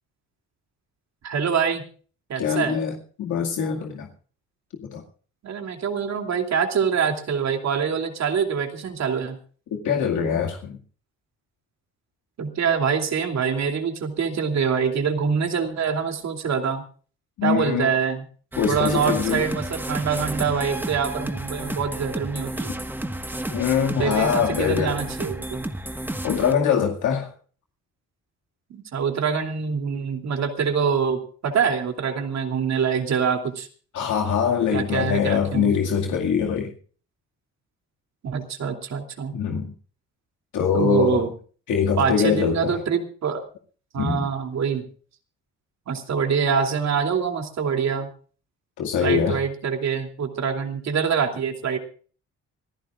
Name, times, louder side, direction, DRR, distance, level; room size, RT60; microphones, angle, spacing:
voice 1, 1.2-1.8 2.3-2.8 5.4-9.4 12.4-16.8 17.4-18.2 18.7-22.7 23.9-25.6 28.7-33.7 34.7-35.7 38.2-39.3 40.7-41.3 42.0-43.4 43.9-44.8 45.9-48.1 49.0-51.8, right 6 dB, 60° right, 3.0 m, -25 dB
voice 2, 2.4-4.1 4.8-5.0 9.7-10.8 17.4-17.9 18.6-19.4 23.5-25.0 26.2-27.3 33.9-36.7 39.3-39.7 40.5-41.2 41.7-42.7 44.0-44.3 48.8-49.4, left 7 dB, 75° left, 2.3 m, -23 dB
sound 1, 18.5-26.5, right 1 dB, 5° right, 1.5 m, -31 dB
25.5 x 14.5 x 2.5 m
cardioid pair, 90°, 30 cm